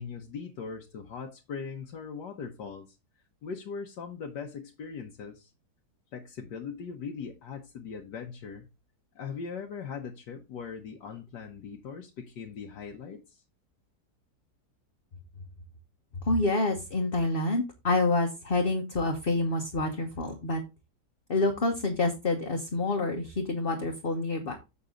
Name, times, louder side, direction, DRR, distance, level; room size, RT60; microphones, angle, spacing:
voice 1, 0.0-3.0 3.4-5.5 6.1-8.7 9.2-13.4, left 6 dB, 75° left, 1.6 m, -40 dB
voice 2, 16.2-20.6 21.3-24.6, left 2 dB, 35° left, 1.2 m, -27 dB
7.4 x 7.0 x 3.7 m
omnidirectional pair, 1.8 m